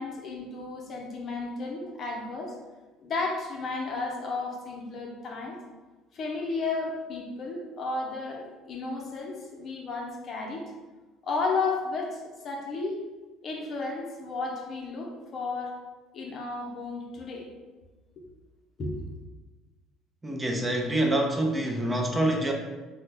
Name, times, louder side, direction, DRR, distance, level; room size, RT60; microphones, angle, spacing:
voice 1, 0.0-2.6 3.0-5.6 6.1-10.7 11.2-13.0 13.4-15.7 16.1-17.5 18.8-18.9, left 3 dB, 45° left, 0 dB, 0.7 m, -33 dB
voice 2, 20.2-22.5, right 1 dB, 20° right, 2 dB, 0.5 m, -26 dB
3.2 x 2.2 x 3.2 m, 1.2 s
hypercardioid pair, 60°, 0 cm